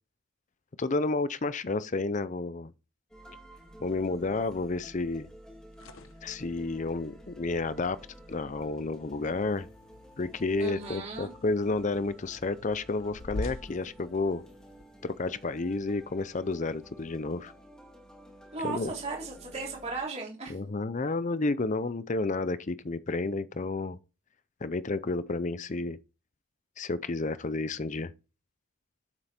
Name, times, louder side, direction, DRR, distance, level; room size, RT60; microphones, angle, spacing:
voice 1, 0.8-2.7 3.8-5.3 6.2-8.0 8.3-9.7 10.2-14.4 15.0-17.5 18.6-18.9 20.5-24.0 24.6-26.0 26.8-28.1, left 3 dB, 35° left, 0.5 m, -31 dB
sound 1, 3.1-20.0, equal, 5° left, 2.6 m, -52 dB
sound 2, 5.7-14.8, left 2 dB, 65° left, 0.9 m, -46 dB
voice 2, 10.6-11.3 18.5-20.5, right 3 dB, 30° right, 3.3 m, -36 dB
8.9 x 7.7 x 4.3 m
head